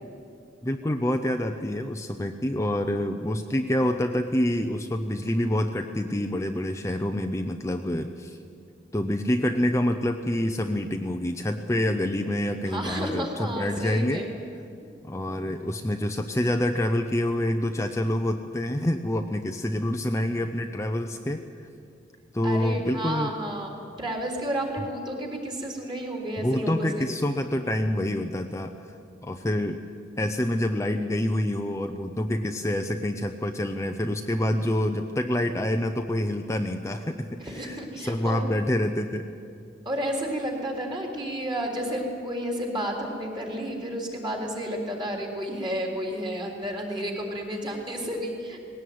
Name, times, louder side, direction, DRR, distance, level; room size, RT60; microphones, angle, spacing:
voice 1, 0.6-8.4 8.9-14.2 15.0-21.7 22.3-23.3 26.4-28.7 29.2-29.8 30.2-39.3, left 1 dB, 15° left, 5 dB, 0.7 m, -27 dB
voice 2, 12.7-14.3 22.4-27.1 37.4-38.4 39.8-48.7, equal, 25° right, 1 dB, 3.9 m, -31 dB
19.5 x 17.0 x 9.4 m, 2.5 s
head